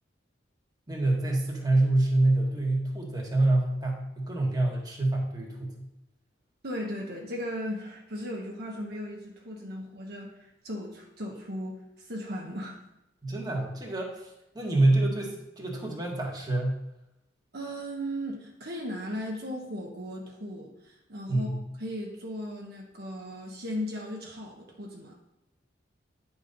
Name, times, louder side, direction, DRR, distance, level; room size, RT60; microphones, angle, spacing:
voice 1, 0.9-5.7 13.2-16.8 21.3-21.6, right 2 dB, 20° right, -1 dB, 1.6 m, -26 dB
voice 2, 6.6-12.8 17.5-25.2, equal, 60° right, -1 dB, 1.3 m, -37 dB
9.5 x 4.1 x 5.2 m, 0.91 s
head